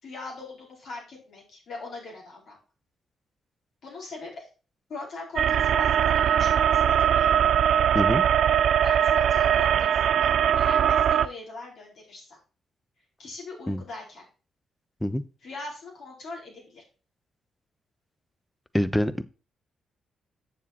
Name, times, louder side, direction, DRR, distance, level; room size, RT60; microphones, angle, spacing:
voice 1, 0.0-2.6 3.8-4.5 4.9-7.3 8.8-12.4 13.2-14.3 15.4-16.8, left 3 dB, 65° left, -2 dB, 4.8 m, -40 dB
sound 1, 5.4-11.3, right 9 dB, 70° right, 0.4 m, -21 dB
voice 2, 18.7-19.2, equal, 5° left, 14 dB, 0.9 m, -25 dB
7.4 x 7.0 x 4.3 m, 0.34 s
supercardioid pair, 60°, 0 cm